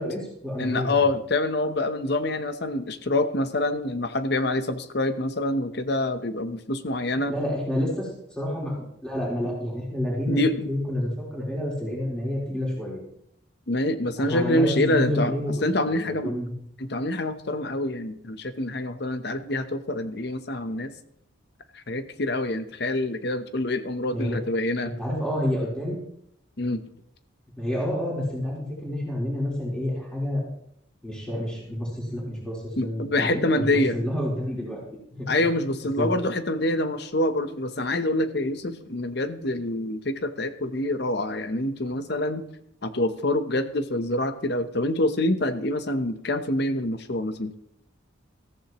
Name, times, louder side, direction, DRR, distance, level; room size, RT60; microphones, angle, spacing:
voice 1, 0.0-1.1 7.1-13.0 14.2-16.5 24.1-24.4 24.8-26.0 27.6-30.4 31.0-34.8 35.1-35.3 35.9-36.1, left 1 dB, 5° left, -5 dB, 3.9 m, -29 dB
voice 2, 0.6-7.3 10.3-10.7 13.7-15.3 15.6-16.3 16.8-20.9 21.7-24.9 26.6-26.8 32.8-34.0 35.3-42.4 42.8-47.5, left 1 dB, 55° left, 10 dB, 0.9 m, -26 dB
14.5 x 14.0 x 3.0 m, 0.73 s
head